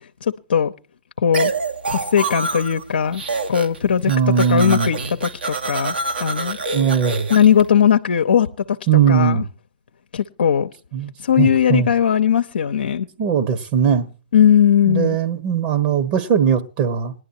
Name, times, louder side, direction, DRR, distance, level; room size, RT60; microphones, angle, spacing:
voice 1, 0.2-0.7 1.2-1.5 1.9-3.2 3.5-4.1 4.4-5.9 6.2-6.6 7.3-8.8 9.1-9.4 10.1-10.7 11.2-13.1 14.3-15.2, left 8 dB, 75° left, 0.7 m, -18 dB
sound 1, 1.3-2.8 3.1-3.8 4.0-7.6, right 3 dB, 85° right, 2.5 m, -26 dB
voice 2, 4.1-4.9 6.7-7.3 8.9-9.4 10.9-11.9 13.2-14.1 14.9-17.1, right 7 dB, 40° right, 1.3 m, -19 dB
19.0 x 11.0 x 2.7 m
hypercardioid pair, 130°, 5 cm